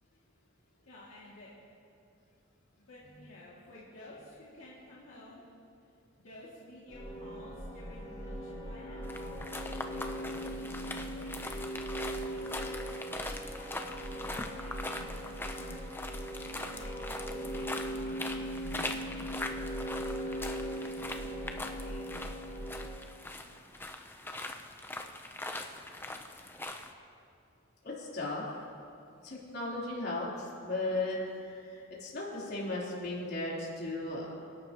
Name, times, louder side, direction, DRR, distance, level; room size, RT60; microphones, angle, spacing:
voice 1, 0.9-1.5 2.9-5.4 6.2-9.4 9.9-11.6 12.0-16.1 16.5-19.3 20.0-22.2, left 1 dB, 70° left, -8 dB, 2.4 m, -52 dB
sound 1, 6.9-22.9, equal, 35° left, 2.2 m, -39 dB
sound 2, 9.0-26.9, left 2 dB, 10° left, 0.6 m, -42 dB
voice 2, 27.8-28.4 29.2-34.3, left 2 dB, 50° left, -6 dB, 3.6 m, -36 dB
28.0 x 11.5 x 3.0 m, 2.5 s
head